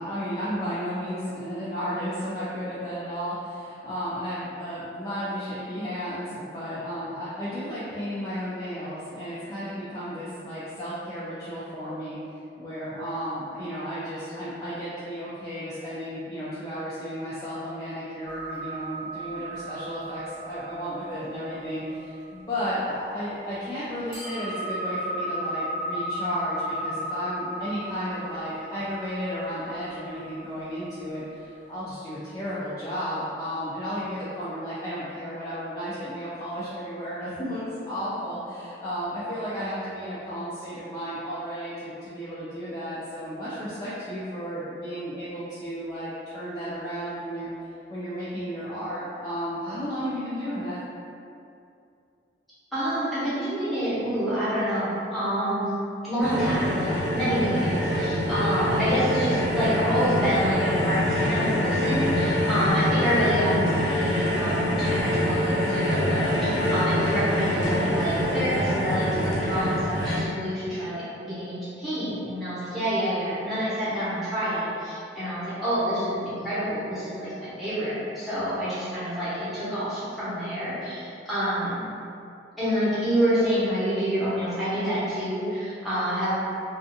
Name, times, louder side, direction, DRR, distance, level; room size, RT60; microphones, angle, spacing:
voice 1, 0.0-12.2 12.6-47.5 47.9-50.8, equal, 20° left, -12 dB, 0.3 m, -33 dB
sound 1, 18.2-23.4 24.1-31.6, right 1 dB, 50° right, 0.8 m, -35 dB
voice 2, 52.7-55.7 56.0-81.8 82.6-86.3, equal, ahead, -14 dB, 0.8 m, -27 dB
sound 2, 56.2-70.2, left 1 dB, 90° left, 0.7 m, -25 dB
2.5 x 2.4 x 2.6 m, 2.6 s
head